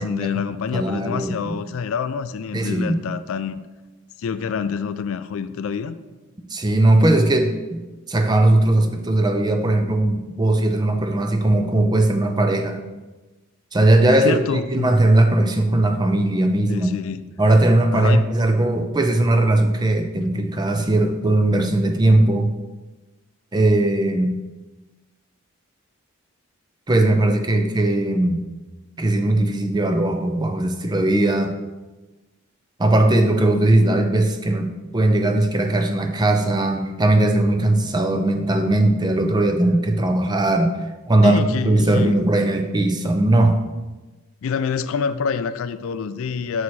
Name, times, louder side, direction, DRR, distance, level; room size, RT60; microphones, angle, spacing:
voice 1, 0.0-3.6 4.2-6.0 14.2-14.9 16.7-17.3 17.9-18.2 41.2-42.2 44.4-46.6, left 6 dB, 70° left, 13 dB, 0.3 m, -26 dB
voice 2, 0.7-1.5 2.5-3.0 6.5-7.8 8.1-12.8 13.7-14.4 14.7-16.9 17.4-22.5 23.5-24.4 26.9-28.5 29.0-31.5 32.8-40.8 41.1-43.6, right 1 dB, 20° right, 5 dB, 0.4 m, -19 dB
6.2 x 4.6 x 4.2 m, 1.2 s
head